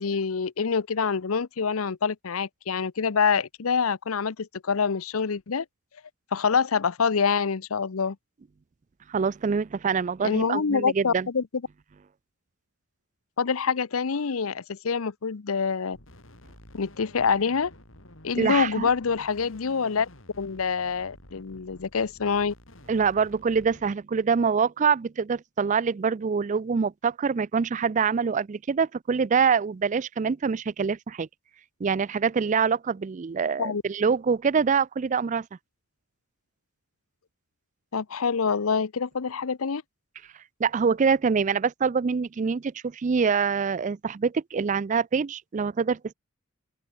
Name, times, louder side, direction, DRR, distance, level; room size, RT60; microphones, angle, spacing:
voice 1, 0.0-5.6 6.3-8.2 10.2-11.5 13.4-16.0 16.7-17.7 18.2-20.1 20.4-22.5 33.6-33.8 37.9-39.8, left 5 dB, 85° left, 0.7 m, -26 dB
voice 2, 9.1-11.3 18.4-18.9 22.9-31.3 31.8-35.5 40.6-46.1, right 5 dB, 35° right, 0.4 m, -25 dB
sound 1, 15.9-24.0, left 1 dB, 70° left, 5.5 m, -51 dB
open air
head